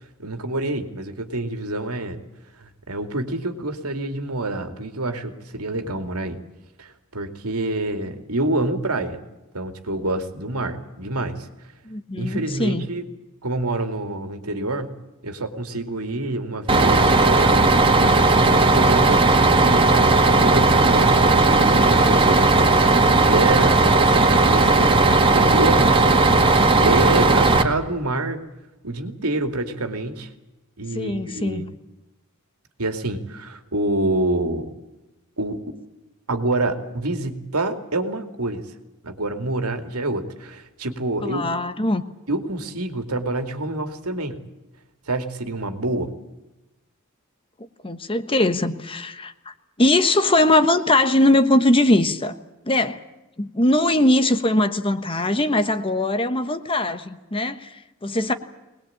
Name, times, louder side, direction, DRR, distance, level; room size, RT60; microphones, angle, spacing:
voice 1, 0.0-2.2 2.6-6.4 6.8-9.2 9.5-11.5 12.2-13.1 13.4-14.9 15.2-17.6 18.3-26.0 26.5-28.4 28.8-30.3 30.8-31.6 32.8-34.7 35.4-35.6 36.3-38.6 39.0-41.6 42.3-44.4 45.1-46.1, right 2 dB, 85° right, 7 dB, 2.5 m, -27 dB
voice 2, 11.8-12.9 30.9-31.7 41.2-42.0 47.8-49.3 49.8-52.4 52.7-53.0 53.4-58.3, left 1 dB, 25° left, 11 dB, 1.2 m, -20 dB
Bus, 16.7-27.6, right 3 dB, 25° right, 1.9 m, -16 dB
23.0 x 20.0 x 8.7 m, 1.0 s
head